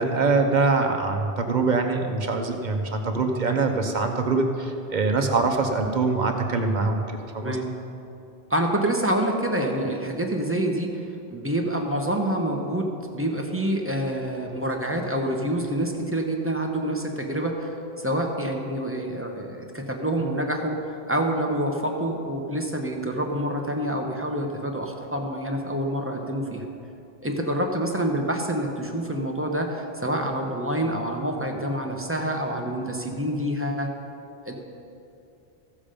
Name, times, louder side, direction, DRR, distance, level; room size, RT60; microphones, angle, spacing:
voice 1, 0.0-7.0 7.3-7.6, right 3 dB, 50° right, 4 dB, 1.0 m, -23 dB
voice 2, 7.4-7.7 8.5-26.6 27.2-33.9 34.4-34.5, right 1 dB, 15° right, 1 dB, 0.9 m, -27 dB
15.0 x 7.3 x 5.1 m, 2.7 s
omnidirectional pair, 1.1 m